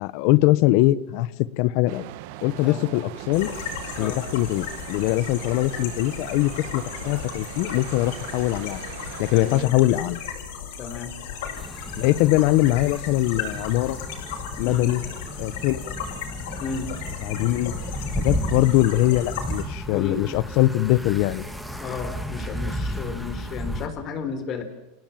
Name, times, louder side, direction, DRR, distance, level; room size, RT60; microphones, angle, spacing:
voice 1, 0.0-2.1 2.4-3.5 4.0-8.8 9.2-10.2 12.0-14.0 14.6-15.0 15.4-16.0 17.2-17.8 18.2-21.4 23.2-23.3, left 17 dB, 55° left, 18 dB, 1.0 m, -22 dB
sound 1, 1.9-9.7, right 16 dB, 60° right, 1.2 m, -40 dB
sound 2, 3.3-19.6, left 7 dB, 70° left, 7.8 m, -36 dB
voice 2, 9.3-9.7 10.8-11.1 14.6-14.9 16.6-16.9 19.9-20.2 21.8-24.6, left 5 dB, 35° left, 9 dB, 4.2 m, -33 dB
sound 3, 11.6-23.9, equal, ahead, 2.3 m, -33 dB
29.0 x 18.0 x 7.4 m, 0.90 s
supercardioid pair, 150°, 0 cm